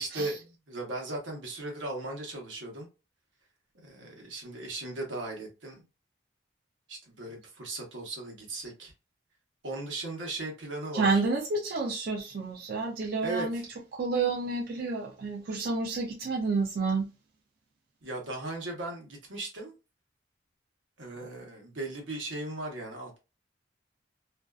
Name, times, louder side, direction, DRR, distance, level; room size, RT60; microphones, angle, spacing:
voice 1, 0.0-2.9 3.7-5.8 6.9-8.9 9.6-11.2 13.2-13.7 18.0-19.7 21.0-23.2, right 2 dB, 85° right, 1.0 m, -37 dB
voice 2, 10.9-13.6 13.9-17.1, right 3 dB, 50° right, 0.4 m, -29 dB
2.5 x 2.3 x 2.3 m
head